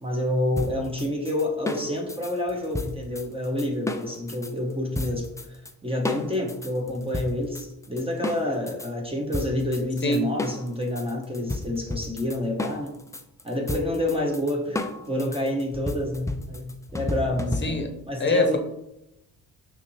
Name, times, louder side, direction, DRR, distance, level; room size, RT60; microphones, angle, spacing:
voice 1, 0.0-13.0 13.4-17.8 18.1-18.6, left 1 dB, 15° right, 0 dB, 0.9 m, -28 dB
sound 1, 0.6-4.5 4.9-5.7 6.0-8.9 9.3-18.0, left 2 dB, 10° left, 0.4 m, -33 dB
voice 2, 18.2-18.6, left 1 dB, 30° left, 5 dB, 0.9 m, -22 dB
5.7 x 2.7 x 3.1 m, 0.84 s
supercardioid pair, 65°, 39 cm